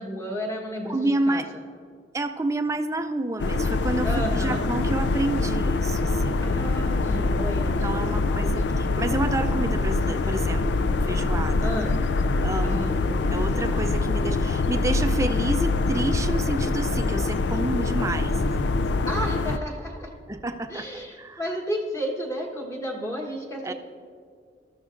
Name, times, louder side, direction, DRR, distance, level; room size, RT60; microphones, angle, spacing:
voice 1, 0.0-1.4 4.0-4.6 6.4-8.7 11.6-11.9 12.6-13.7 19.0-20.1 20.7-23.7, equal, 15° left, -1 dB, 1.2 m, -33 dB
voice 2, 0.9-1.5 2.1-6.4 7.6-11.7 12.4-13.0 13.3-18.7 20.3-20.9 21.2-21.4 23.6-23.7, right 2 dB, 15° right, 8 dB, 0.4 m, -29 dB
sound 1, 3.4-19.6, left 3 dB, 70° left, 0.4 m, -24 dB
19.0 x 13.0 x 2.6 m, 2.2 s
head